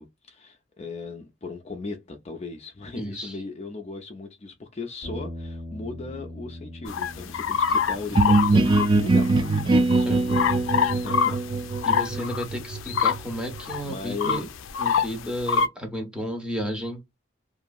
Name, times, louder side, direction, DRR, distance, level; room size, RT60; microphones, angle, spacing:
voice 1, 0.0-11.4 12.1-12.3 13.8-14.5, left 3 dB, 35° left, 0.5 m, -37 dB
voice 2, 3.0-3.4 10.0-10.2 11.8-14.5 14.8-17.0, equal, 5° right, 0.8 m, -32 dB
sound 1, 5.0-13.4, left 1 dB, 55° right, 1.3 m, -43 dB
sound 2, 6.8-9.6 9.9-15.7, left 6 dB, 85° left, 0.4 m, -25 dB
sound 3, 8.1-13.8, right 3 dB, 25° right, 0.3 m, -23 dB
2.9 x 2.6 x 2.3 m
head